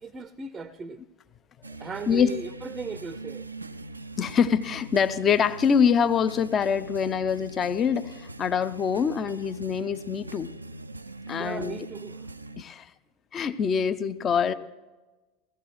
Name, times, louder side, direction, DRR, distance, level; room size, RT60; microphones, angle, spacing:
voice 1, 0.0-1.0 1.8-3.5 11.3-12.3, right 5 dB, 25° right, 0.5 m, -37 dB
sound 1, 1.6-12.6, right 2 dB, 85° right, 0.3 m, -42 dB
voice 2, 4.2-10.5 11.3-11.8 12.6-12.9 13.3-14.5, left 7 dB, 30° left, 0.6 m, -24 dB
18.0 x 14.5 x 3.1 m
figure-of-eight pair, 80°, 0 cm